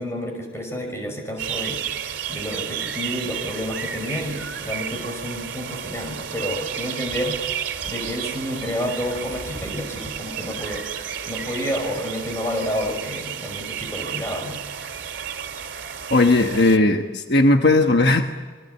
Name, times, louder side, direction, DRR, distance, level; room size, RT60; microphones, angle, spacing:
voice 1, 0.0-1.8 2.3-7.3 7.8-10.8 11.3-14.6, equal, 15° left, 3 dB, 5.9 m, -29 dB
sound 1, 1.4-16.8, right 8 dB, 90° right, 2.4 m, -32 dB
voice 2, 16.1-18.2, left 2 dB, 60° left, 5 dB, 1.3 m, -17 dB
27.0 x 23.5 x 8.3 m, 1.5 s
head